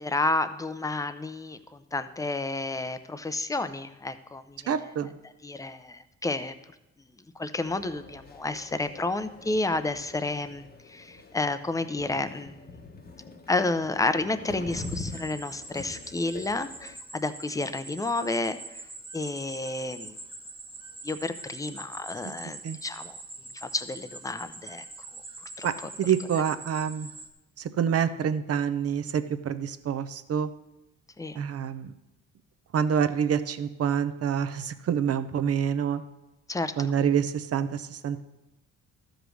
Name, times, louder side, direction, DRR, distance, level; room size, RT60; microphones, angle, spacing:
voice 1, 0.0-1.6 1.9-4.7 5.4-6.5 7.4-12.7 13.5-18.6 19.1-20.1 21.0-23.2 23.5-24.8 25.6-25.9 31.2-31.4 36.5-36.9, left 2 dB, 10° left, 11 dB, 0.6 m, -31 dB
voice 2, 4.7-5.2 22.6-22.8 25.6-25.7 26.0-27.1 27.6-30.5 31.4-31.9 32.7-36.0 36.8-38.2, right 8 dB, 50° right, 11 dB, 0.7 m, -27 dB
sound 1, 7.6-17.0, left 3 dB, 30° left, 1.0 m, -44 dB
sound 2, 14.7-27.3, right 2 dB, 15° right, 1.1 m, -44 dB
12.5 x 5.2 x 6.2 m, 0.95 s
cardioid pair, 90°, 30 cm